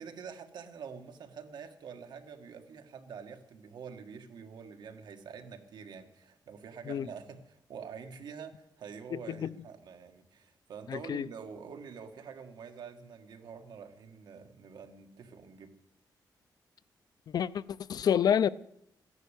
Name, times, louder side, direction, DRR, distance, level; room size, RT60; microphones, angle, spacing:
voice 1, 0.0-15.7, right 6 dB, 70° right, 1.7 m, -46 dB
voice 2, 9.1-9.5 10.9-11.3 17.3-18.5, left 8 dB, 60° left, 0.5 m, -29 dB
15.0 x 11.0 x 8.2 m
wide cardioid pair, 170°, 8 cm